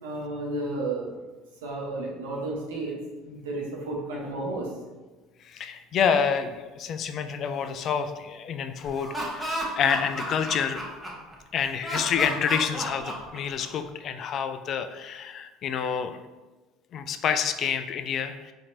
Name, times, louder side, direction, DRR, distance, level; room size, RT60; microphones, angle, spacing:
voice 1, 0.0-1.1 1.6-3.0 3.2-4.7, right 2 dB, 85° right, -2 dB, 0.8 m, -32 dB
voice 2, 5.4-10.8 11.5-16.2 16.9-18.5, left 7 dB, 50° left, 8 dB, 0.3 m, -28 dB
Laughter, 8.8-11.3 11.8-13.9, right 1 dB, 10° right, 1.0 m, -32 dB
4.3 x 2.7 x 2.6 m, 1.2 s
hypercardioid pair, 75°, 0 cm